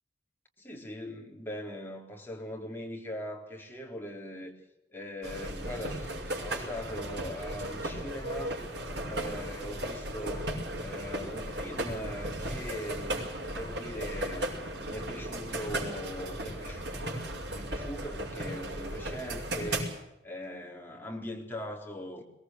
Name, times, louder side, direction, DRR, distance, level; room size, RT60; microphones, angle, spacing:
voice 1, 0.6-4.5 4.9-8.6 9.0-10.5 10.8-13.3 13.5-14.5 14.8-17.1 17.5-19.9 20.2-22.2, equal, 10° left, 3.9 m, -41 dB
sound 1, 5.2-19.8, right 1 dB, 65° right, 6.0 m, -36 dB
22.5 x 19.0 x 8.1 m
head